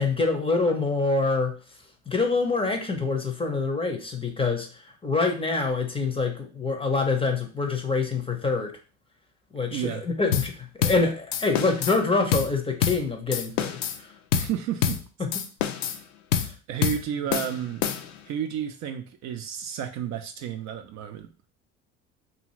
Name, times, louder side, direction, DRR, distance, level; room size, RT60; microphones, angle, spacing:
voice 1, 0.0-1.6 2.1-4.7 5.0-8.7 9.5-9.9 10.2-13.8 15.2-15.3 16.3-16.5, left 3 dB, 15° left, 4 dB, 0.6 m, -25 dB
voice 2, 9.7-10.0 14.3-15.0 16.7-17.9 18.2-21.3, right 9 dB, 50° right, 7 dB, 0.5 m, -31 dB
sound 1, 10.3-10.5 10.8-11.0 11.3-12.0 12.3-12.5 12.8-13.0 13.3-14.0 14.3-14.5 14.8-15.0 15.3-16.0 16.3-16.5 16.8-17.0 17.3-18.2, left 9 dB, 80° left, 0.5 m, -26 dB
2.7 x 2.5 x 3.0 m, 0.35 s
hypercardioid pair, 70°, 38 cm